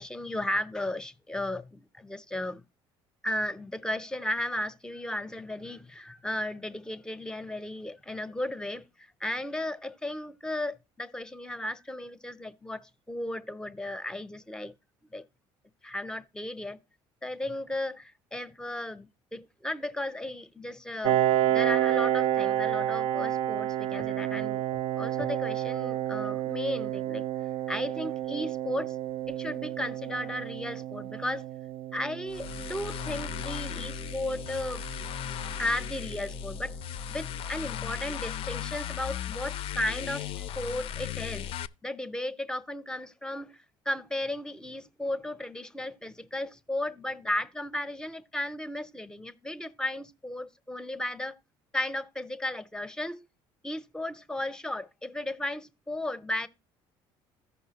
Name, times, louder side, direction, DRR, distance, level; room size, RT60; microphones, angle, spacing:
voice 1, 0.0-2.6 3.2-14.7 15.1-15.3 15.8-16.8 17.2-21.2 21.5-27.3 27.7-29.0 29.3-31.5 31.9-34.8 35.6-36.8 37.1-41.5 41.8-51.3 51.7-53.2 53.6-56.5, left 1 dB, 5° left, 0.6 m, -35 dB
Piano, 21.0-36.4, right 12 dB, 70° right, 0.4 m, -31 dB
sound 1, 32.3-41.7, left 9 dB, 55° left, 0.4 m, -36 dB
15.0 x 5.5 x 2.8 m
cardioid pair, 100°, 11 cm